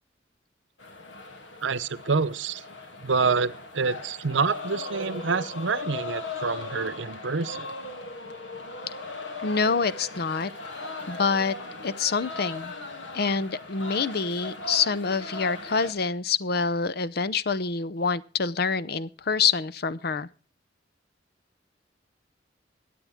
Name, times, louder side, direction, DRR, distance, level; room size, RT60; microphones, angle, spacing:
sound 1, 0.8-15.9, left 2 dB, 80° left, 2.6 m, -38 dB
voice 1, 1.6-2.6 3.0-7.7, right 4 dB, 80° right, 0.8 m, -27 dB
voice 2, 9.4-10.5 11.1-11.5 11.8-12.7 13.1-20.3, left 5 dB, 55° left, 0.7 m, -26 dB
23.5 x 8.6 x 3.6 m
head